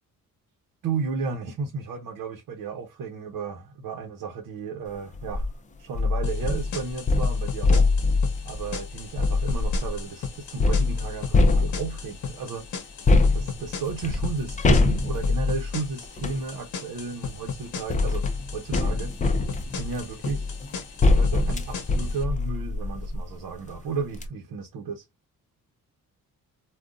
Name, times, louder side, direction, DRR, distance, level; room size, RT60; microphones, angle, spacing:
voice 1, 0.8-5.5 5.8-7.9 8.4-12.7 13.3-18.2 18.5-19.2 19.7-20.6 21.0-25.0, right 5 dB, 80° right, 0.9 m, -33 dB
sound 1, 5.1-5.5 5.9-10.0 10.6-12.1 13.0-16.4 17.4-23.3 23.7-23.8 24.1-24.3, left 3 dB, 25° left, 0.5 m, -24 dB
sound 2, 6.2-22.2, left 6 dB, 60° left, 0.9 m, -37 dB
3.8 x 2.4 x 2.4 m
wide cardioid pair, 155°, 33 cm